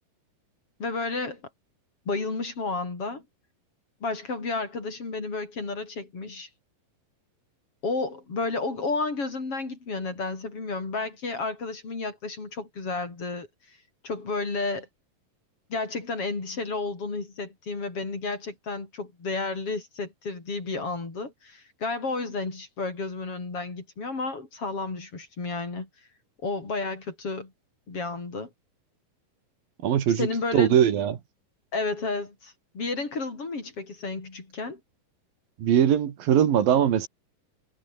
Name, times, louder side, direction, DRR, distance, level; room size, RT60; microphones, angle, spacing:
voice 1, 0.8-1.4 2.1-3.2 4.0-6.5 7.8-13.8 14.0-14.9 15.7-25.9 26.4-27.5 27.9-28.5 30.1-30.8 31.7-34.8, left 3 dB, 40° left, 5.7 m, -32 dB
voice 2, 29.8-31.2 35.6-37.1, right 9 dB, 75° right, 3.9 m, -21 dB
omnidirectional pair, 4.0 m